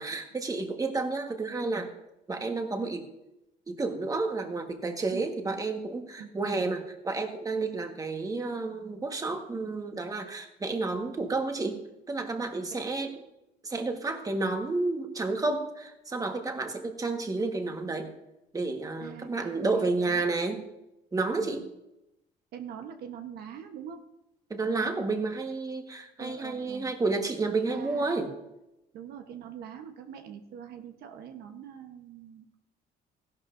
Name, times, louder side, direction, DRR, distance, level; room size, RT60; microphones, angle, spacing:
voice 1, 0.0-1.9 2.3-3.0 3.7-11.8 12.1-13.1 13.6-18.1 18.5-20.6 21.1-21.6 24.5-28.3, right 3 dB, 20° right, 4 dB, 1.4 m, -31 dB
voice 2, 19.0-20.3 21.4-21.6 22.5-24.1 26.2-26.9 27.7-28.1 28.9-32.6, right 8 dB, 70° right, 5 dB, 1.1 m, -44 dB
15.0 x 11.5 x 2.6 m, 0.89 s
cardioid pair, 110°, 17 cm